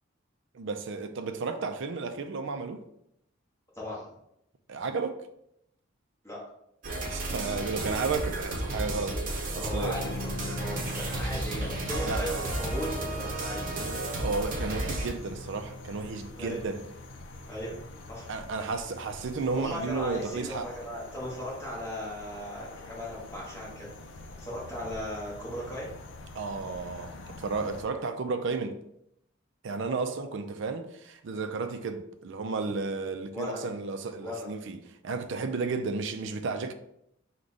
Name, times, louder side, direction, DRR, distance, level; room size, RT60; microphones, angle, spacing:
voice 1, 0.5-2.8 4.7-5.2 7.0-10.0 12.1-12.3 14.1-16.8 18.3-20.7 26.4-28.8 29.6-36.7, right 4 dB, 60° right, 0.4 m, -33 dB
voice 2, 3.7-4.1 6.2-6.4 9.5-13.6 16.3-16.6 17.5-18.3 19.5-25.9 33.3-33.7 34.2-34.5, equal, 15° left, 1.1 m, -37 dB
sound 1, 6.8-15.1, right 1 dB, 40° right, 0.8 m, -33 dB
sound 2, 9.8-20.3, equal, 10° right, 1.2 m, -43 dB
sound 3, 10.1-27.8, left 2 dB, 60° left, 0.5 m, -46 dB
4.8 x 2.3 x 3.9 m
head